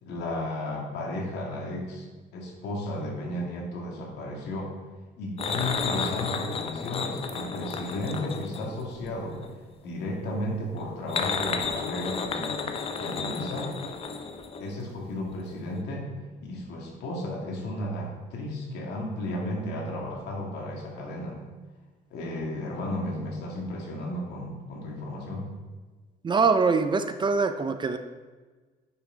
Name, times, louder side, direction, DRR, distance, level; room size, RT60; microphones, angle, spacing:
voice 1, 0.0-4.7 5.2-9.4 9.8-12.6 13.0-13.7 14.6-16.2 16.4-21.4 22.1-25.5, left 1 dB, 80° left, -1 dB, 2.3 m, -34 dB
sound 1, 5.4-9.6 10.8-15.1 15.3-15.4 15.8-15.9, left 5 dB, 35° left, 0.8 m, -32 dB
voice 2, 26.2-28.0, right 4 dB, 25° right, 9 dB, 0.6 m, -23 dB
9.9 x 5.9 x 3.9 m, 1.3 s
cardioid pair, 110°, 17 cm